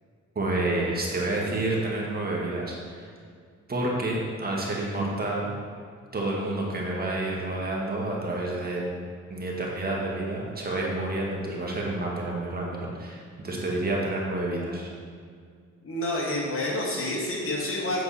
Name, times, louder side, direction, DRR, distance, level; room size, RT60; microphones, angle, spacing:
voice 1, 0.4-3.1 3.7-5.5 6.1-8.8 9.3-14.9, right 2 dB, 30° right, -3 dB, 1.9 m, -29 dB
voice 2, 15.8-18.0, left 1 dB, 45° left, -3 dB, 2.2 m, -28 dB
8.0 x 6.9 x 4.3 m, 2.1 s
cardioid pair, 90°, 30 cm